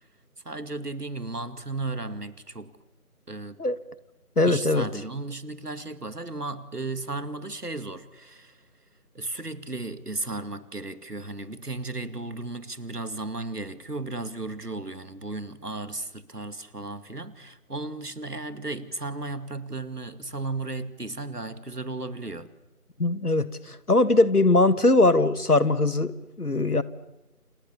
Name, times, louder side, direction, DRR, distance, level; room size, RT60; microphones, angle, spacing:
voice 1, 0.4-2.7 3.3-3.6 4.4-8.6 9.1-22.5, right 2 dB, 85° right, 2.4 m, -35 dB
voice 2, 4.4-4.9 23.0-26.8, left 2 dB, 80° left, 1.9 m, -21 dB
29.5 x 28.0 x 7.1 m
figure-of-eight pair, 175°, 45 cm